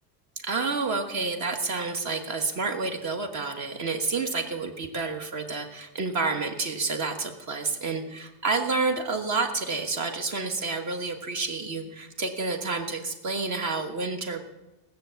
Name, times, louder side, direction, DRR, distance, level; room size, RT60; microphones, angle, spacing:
voice 1, 0.4-14.4, right 3 dB, 40° right, 5 dB, 1.5 m, -29 dB
18.5 x 6.9 x 8.1 m, 1.0 s
cardioid pair, 180°, 43 cm